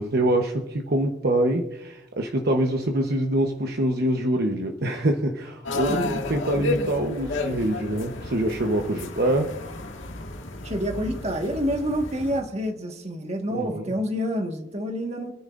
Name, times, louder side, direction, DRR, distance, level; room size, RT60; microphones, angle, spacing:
voice 1, 0.0-9.5 13.5-13.9, right 1 dB, 55° right, 3 dB, 1.0 m, -25 dB
sound 1, 5.6-12.4, left 2 dB, 80° left, 1.7 m, -32 dB
voice 2, 5.9-6.2 10.6-15.3, equal, 35° right, 4 dB, 1.5 m, -28 dB
28.0 x 10.0 x 2.5 m, 0.87 s
head